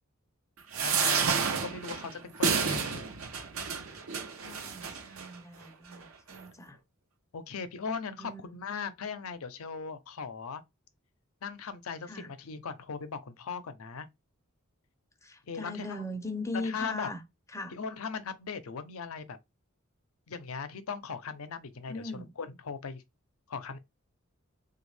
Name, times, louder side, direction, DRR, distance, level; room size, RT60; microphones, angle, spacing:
sound 1, 0.7-5.3 5.9-6.0 6.3-6.4, right 5 dB, 80° right, 0.6 m, -30 dB
voice 1, 0.8-1.3 1.6-3.1 7.3-10.6 11.4-14.1 15.5-16.1 16.6-17.1 17.7-19.4 20.3-22.1 22.4-23.0 23.5-23.8, left 5 dB, 90° left, 0.6 m, -39 dB
voice 2, 4.4-6.8 8.2-8.4 12.1-12.3 15.2-17.2 17.5-17.7 21.9-22.3, left 2 dB, 15° left, 0.5 m, -39 dB
3.5 x 2.3 x 3.2 m
head